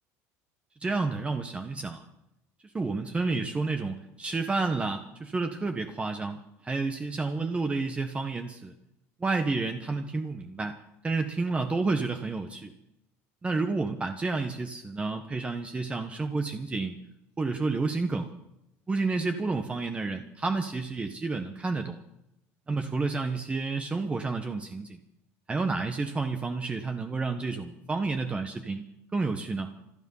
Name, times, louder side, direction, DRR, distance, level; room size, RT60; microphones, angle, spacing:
voice 1, 0.8-2.0 2.7-8.7 9.2-10.8 11.0-12.7 13.4-17.0 17.4-18.3 18.9-22.0 22.7-25.0 25.5-28.8 29.1-29.7, right 3 dB, 20° right, 6 dB, 1.3 m, -30 dB
27.0 x 9.3 x 5.6 m, 0.85 s
supercardioid pair, 120°, 7 cm